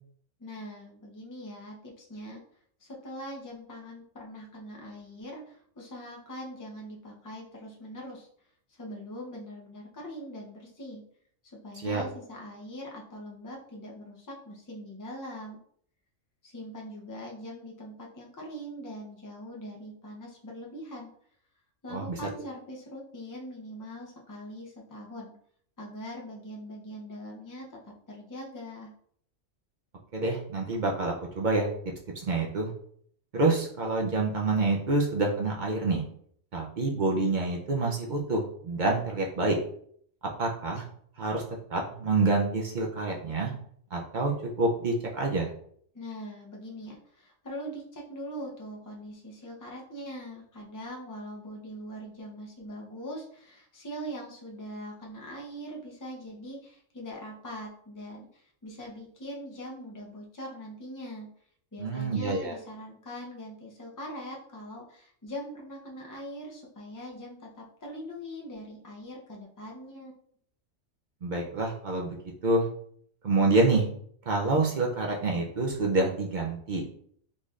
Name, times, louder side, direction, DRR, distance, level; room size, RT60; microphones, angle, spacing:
voice 1, 0.4-2.4 2.8-8.3 8.7-11.0 11.4-15.6 16.4-21.1 21.8-25.3 25.8-27.8 28.1-28.9 45.9-61.3 61.7-70.1, equal, 20° left, -2 dB, 0.5 m, -42 dB
voice 2, 30.1-31.7 32.2-32.7 33.3-36.0 36.5-39.6 40.4-40.8 41.2-41.4 41.7-43.5 43.9-45.5 61.8-62.5 71.2-72.2 72.4-72.7 73.2-73.8 74.3-76.8, right 3 dB, 55° right, 0 dB, 0.5 m, -27 dB
3.9 x 3.1 x 2.4 m, 0.62 s
omnidirectional pair, 1.3 m